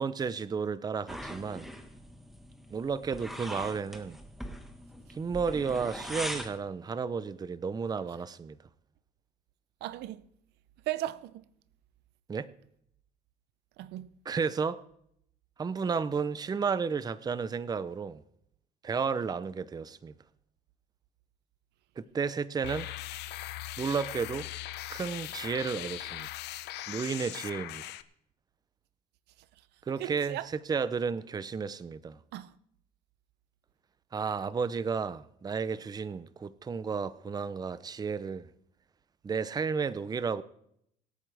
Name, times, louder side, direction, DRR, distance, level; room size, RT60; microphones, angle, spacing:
voice 1, 0.0-1.7 2.7-4.2 5.1-8.6 12.3-12.5 14.3-14.8 15.6-18.2 18.8-20.1 22.0-22.9 23.8-24.5 24.9-26.3 26.9-27.8 29.9-32.2 34.1-38.5 39.2-40.4, right 5 dB, 25° right, 0.6 m, -32 dB
sound 1, 1.1-6.6, equal, ahead, 1.5 m, -41 dB
voice 2, 9.8-10.2 10.9-11.4 13.8-14.1 29.9-30.5 32.3-32.5, right 14 dB, 80° right, 0.6 m, -36 dB
sound 2, 22.6-28.0, left 15 dB, 80° left, 0.7 m, -40 dB
24.0 x 8.7 x 3.4 m
cardioid pair, 110°, 17 cm